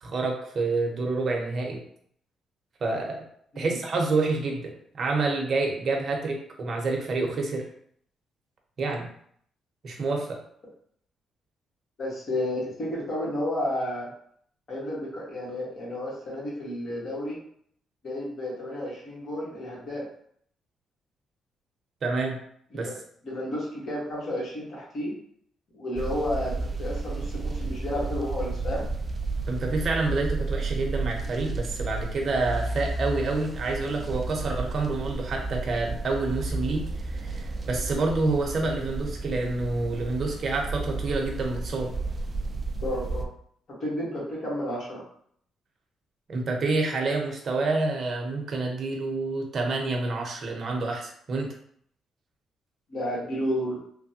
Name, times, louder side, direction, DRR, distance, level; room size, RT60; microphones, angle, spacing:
voice 1, 0.0-1.8 2.8-3.2 3.6-7.6 8.8-9.1 9.8-10.4 22.0-22.4 22.7-22.9 29.5-41.9 46.3-51.5, right 3 dB, 50° right, 1 dB, 0.7 m, -28 dB
voice 2, 12.0-14.1 14.7-17.4 18.0-20.0 22.7-22.9 23.2-25.1 25.7-28.8 42.8-43.3 43.8-45.0 52.9-53.8, left 1 dB, 55° left, -5 dB, 1.5 m, -31 dB
sound 1, 26.0-43.3, right 3 dB, 35° right, 0.3 m, -32 dB
3.2 x 2.1 x 2.8 m, 0.64 s
cardioid pair, 95°, 0 cm